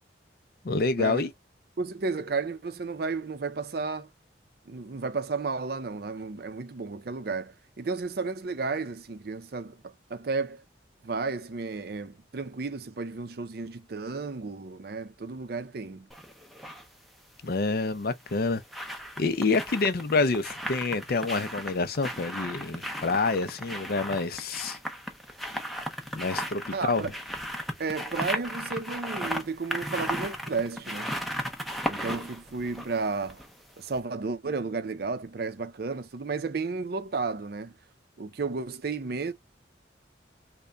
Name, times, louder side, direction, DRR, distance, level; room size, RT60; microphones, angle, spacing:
voice 1, 0.6-1.3 17.4-18.6 19.2-24.8 26.1-27.0, left 3 dB, 55° left, 0.5 m, -27 dB
voice 2, 1.8-4.1 4.7-10.6 11.0-16.1 26.7-27.1 27.8-31.1 31.9-33.4 33.8-37.7 38.2-39.3, right 4 dB, 55° right, 0.5 m, -33 dB
sound 1, 16.1-16.8 18.1-33.6 33.9-34.0, equal, ahead, 0.5 m, -36 dB
3.4 x 2.2 x 3.8 m
head